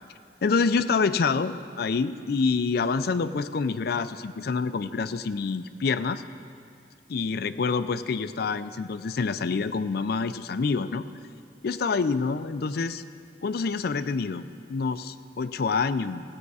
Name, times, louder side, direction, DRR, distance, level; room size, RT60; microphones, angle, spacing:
voice 1, 0.4-6.2 7.1-11.0 11.6-13.0 13.4-14.4 14.7-16.2, left 4 dB, 60° left, 11 dB, 0.4 m, -27 dB
16.5 x 8.1 x 4.8 m, 2.3 s
head